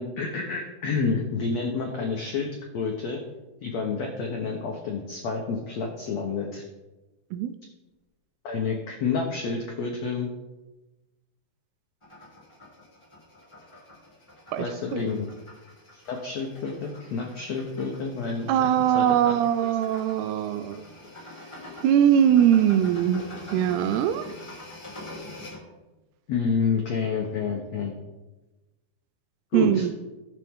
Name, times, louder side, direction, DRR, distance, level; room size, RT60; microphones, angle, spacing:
voice 1, 0.0-2.5 2.7-3.2 3.6-6.6 8.4-10.3 14.6-15.3 15.9-18.7 18.9-19.3 26.3-28.0 29.5-29.9, left 4 dB, 80° left, 0 dB, 1.5 m, -29 dB
sound 1, 12.0-25.6, left 1 dB, 10° left, 2.3 m, -45 dB
voice 2, 18.5-20.8 21.8-23.3 23.5-24.2 29.5-29.9, right 10 dB, 85° right, 11 dB, 2.5 m, -21 dB
15.5 x 7.5 x 3.7 m, 1.1 s
omnidirectional pair, 4.6 m